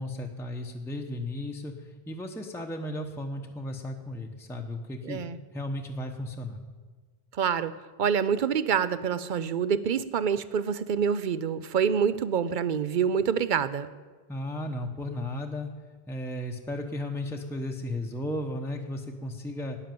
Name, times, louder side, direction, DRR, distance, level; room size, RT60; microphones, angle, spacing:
voice 1, 0.0-5.2 5.5-6.6 14.3-15.7 16.1-19.8, left 1 dB, 5° left, 3 dB, 0.8 m, -35 dB
voice 2, 5.0-5.4 7.3-7.7 8.0-13.9, right 7 dB, 55° right, 15 dB, 0.7 m, -26 dB
12.5 x 10.0 x 7.7 m, 1.4 s
omnidirectional pair, 1.0 m